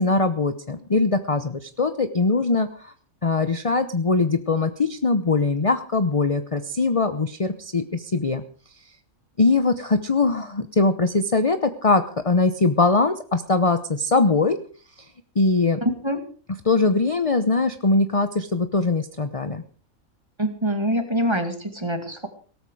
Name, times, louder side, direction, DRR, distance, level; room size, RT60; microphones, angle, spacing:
voice 1, 0.0-2.9 3.2-8.4 9.4-14.6 15.3-15.8 16.6-19.6, left 3 dB, 30° left, 9 dB, 0.9 m, -21 dB
voice 2, 15.8-16.2 20.4-22.3, equal, 20° right, 7 dB, 2.1 m, -25 dB
18.0 x 13.5 x 4.9 m, 0.42 s
omnidirectional pair, 1.4 m